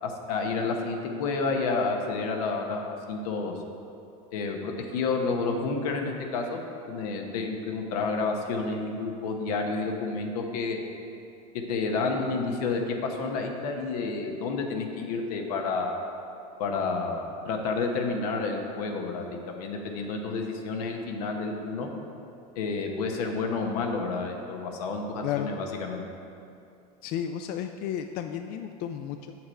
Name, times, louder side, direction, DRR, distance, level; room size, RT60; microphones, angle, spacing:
voice 1, 0.0-2.8 3.1-3.5 4.3-6.6 6.9-10.8 11.5-16.0 16.6-21.9 22.6-26.0, left 4 dB, 85° left, 2 dB, 1.0 m, -30 dB
voice 2, 27.0-29.4, left 10 dB, 50° left, 6 dB, 0.4 m, -32 dB
7.8 x 5.8 x 4.2 m, 2.7 s
supercardioid pair, 115°, 19 cm